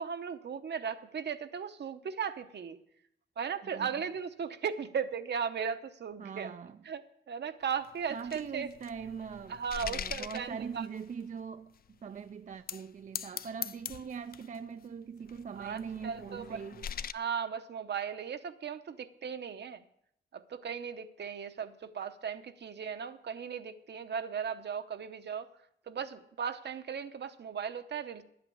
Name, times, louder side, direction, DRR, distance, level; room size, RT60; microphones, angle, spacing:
voice 1, 0.0-2.8 3.4-6.5 6.8-7.0 7.3-8.7 9.5-10.9 15.6-16.6 17.1-19.8 20.3-25.5 25.9-28.2, right 7 dB, 65° right, 0.9 m, -37 dB
voice 2, 6.2-6.8 8.1-16.9, right 6 dB, 45° right, 0.4 m, -42 dB
sound 1, 7.8-11.1 11.8-11.9 12.5-12.9 13.1-14.6 15.3-17.1, left 8 dB, 55° left, 0.4 m, -42 dB
10.5 x 8.6 x 8.6 m
wide cardioid pair, 120°, 19 cm